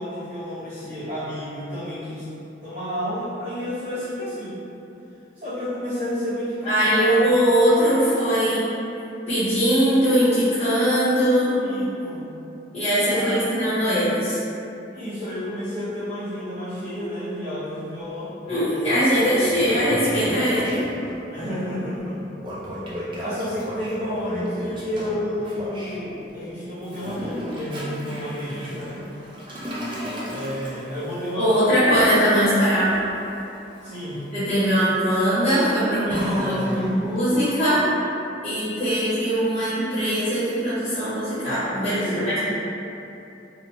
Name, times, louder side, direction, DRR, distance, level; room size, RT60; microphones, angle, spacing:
voice 1, 0.0-2.3 2.6-4.6 5.3-7.3 11.6-12.4 13.1-13.7 14.9-18.3 21.3-22.2 23.2-29.0 30.3-31.7 33.8-34.2 36.0-36.9 41.8-42.4, equal, 55° right, -17 dB, 0.9 m, -31 dB
voice 2, 6.7-8.7 9.3-11.6 12.7-14.4 18.5-20.8 31.4-33.0 34.3-37.8 38.4-42.4, equal, 35° left, -14 dB, 0.9 m, -21 dB
Toilet flush, 18.7-18.8 19.2-21.1 22.4-26.0 26.8-37.2, equal, 25° right, 0.4 m, -34 dB
3.0 x 2.1 x 2.8 m, 2.8 s
head